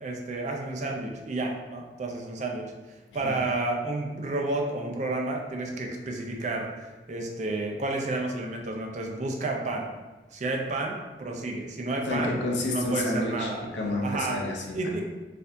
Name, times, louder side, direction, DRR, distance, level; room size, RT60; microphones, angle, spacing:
voice 1, 0.0-9.9 10.3-12.3 12.7-13.6 14.0-14.4 14.7-15.0, right 2 dB, 40° right, 1 dB, 0.5 m, -31 dB
voice 2, 12.1-14.8, left 1 dB, 90° left, 0 dB, 0.6 m, -29 dB
4.2 x 2.7 x 2.5 m, 1.2 s
head